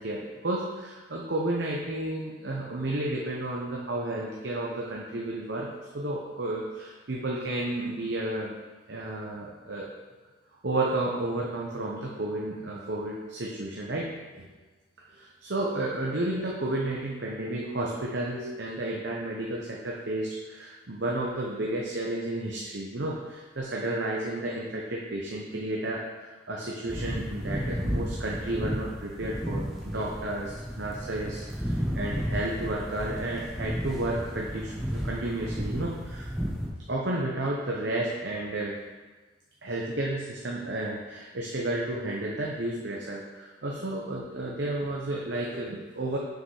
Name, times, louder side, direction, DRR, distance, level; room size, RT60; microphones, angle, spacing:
voice 1, 0.0-5.7 5.9-8.6 8.9-9.9 10.6-14.1 14.3-14.5 15.1-36.3 36.9-38.8 39.6-46.2, right 1 dB, 65° right, -3 dB, 0.8 m, -32 dB
sound 1, 26.9-36.7, equal, ahead, 1.2 m, -33 dB
6.5 x 5.3 x 4.8 m, 1.3 s
head